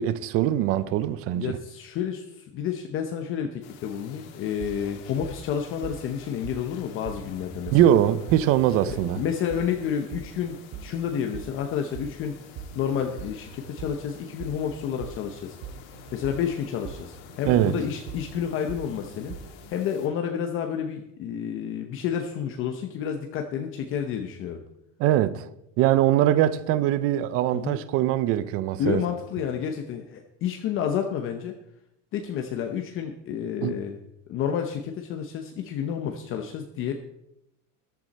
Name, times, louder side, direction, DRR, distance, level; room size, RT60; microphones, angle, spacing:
voice 1, 0.0-1.6 7.7-9.2 17.5-17.8 25.0-25.5 25.8-29.0 33.6-33.8, right 12 dB, 35° right, 0.7 m, -22 dB
voice 2, 1.3-8.0 8.9-10.6 10.8-12.3 12.7-15.6 16.1-19.3 19.7-24.6 27.5-27.8 28.8-31.5 32.1-34.0 34.3-36.9, left 8 dB, 35° left, 0.9 m, -30 dB
sound 1, 3.6-20.1, left 8 dB, 60° left, 2.2 m, -49 dB
sound 2, 4.5-19.7, right 7 dB, 55° right, 2.2 m, -43 dB
14.0 x 12.0 x 4.2 m
cardioid pair, 170°, 38 cm